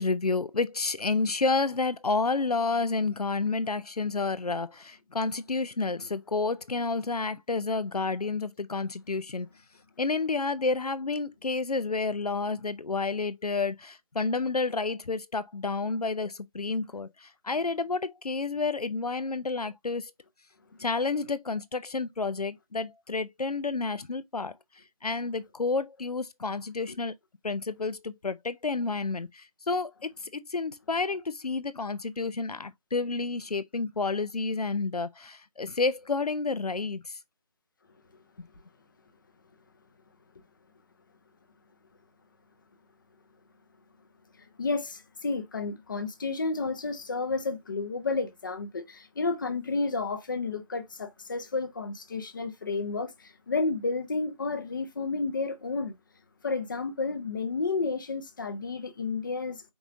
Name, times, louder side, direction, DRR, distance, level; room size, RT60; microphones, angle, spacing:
voice 1, 0.0-9.5 10.0-20.1 20.8-24.6 25.0-27.1 27.4-37.2, left 3 dB, 80° left, 0.6 m, -30 dB
voice 2, 44.4-55.9 56.4-59.6, left 3 dB, 30° left, 0.7 m, -31 dB
4.8 x 3.8 x 2.5 m
figure-of-eight pair, 155°, 20 cm